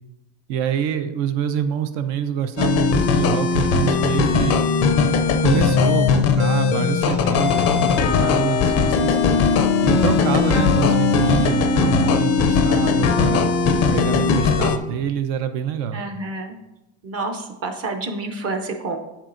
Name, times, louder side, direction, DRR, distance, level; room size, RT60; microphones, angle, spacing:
voice 1, 0.5-4.6 5.4-9.2 9.8-13.5 13.9-16.0, right 9 dB, 70° right, 8 dB, 0.7 m, -26 dB
sound 1, 2.6-14.8, left 5 dB, 35° left, 0.4 m, -18 dB
voice 2, 15.9-16.6 17.0-19.0, right 3 dB, 30° right, 5 dB, 0.6 m, -28 dB
8.3 x 7.3 x 2.5 m, 0.96 s
cardioid pair, 155°, 48 cm